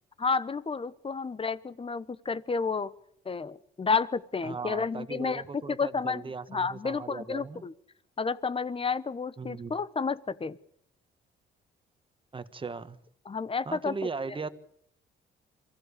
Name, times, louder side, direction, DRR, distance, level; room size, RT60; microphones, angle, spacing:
voice 1, 0.2-2.9 3.2-5.4 5.7-6.2 6.5-7.7 8.2-10.6 13.3-13.9, left 5 dB, 30° left, 17 dB, 1.1 m, -31 dB
voice 2, 4.4-7.6 9.4-9.7 12.3-13.0 13.6-14.5, right 4 dB, 25° right, 12 dB, 1.5 m, -38 dB
24.0 x 15.5 x 8.4 m, 0.72 s
cardioid pair, 90°, 20 cm